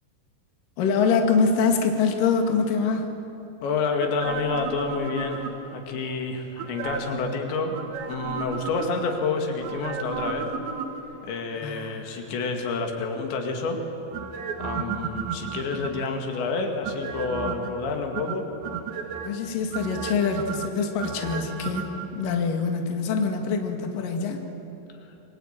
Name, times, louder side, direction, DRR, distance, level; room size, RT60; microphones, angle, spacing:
voice 1, 0.8-3.1 11.6-12.2 19.2-24.4, left 5 dB, 55° left, 3 dB, 3.5 m, -25 dB
voice 2, 3.6-7.8 8.1-10.5 11.2-13.8 14.6-18.5, left 4 dB, 85° left, 3 dB, 4.5 m, -29 dB
sound 1, 4.0-5.8 6.6-7.3 7.7-9.2 9.6-11.3 14.1-16.2 16.8-17.7 18.1-19.3 19.7-22.1 22.4-22.5, right 6 dB, 80° right, 3.9 m, -33 dB
27.5 x 23.0 x 9.0 m, 2.9 s
omnidirectional pair, 5.0 m